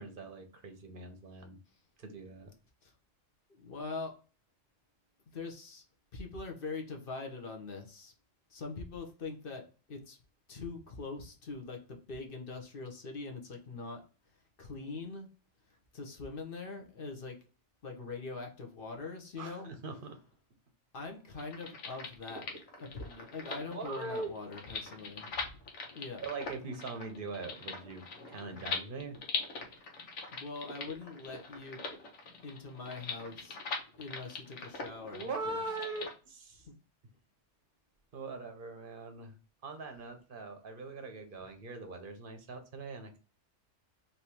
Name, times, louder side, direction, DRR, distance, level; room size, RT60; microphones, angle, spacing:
voice 1, 0.0-1.6 2.0-2.5 19.4-20.2 23.5-24.3 26.2-29.2 35.1-36.7 38.1-39.4 39.6-43.2, right 3 dB, 50° right, 6 dB, 0.8 m, -42 dB
voice 2, 3.5-4.2 5.3-5.8 6.1-8.1 8.5-10.2 10.5-14.0 14.6-15.3 15.7-17.4 17.8-19.7 20.9-22.5 22.8-25.6 25.9-26.3 30.3-31.8 32.4-33.6 34.0-35.6 36.6-36.7, left 3 dB, 50° left, 3 dB, 1.0 m, -43 dB
sound 1, 21.3-36.1, left 4 dB, 85° left, 1.4 m, -42 dB
3.5 x 2.7 x 4.3 m, 0.35 s
omnidirectional pair, 1.3 m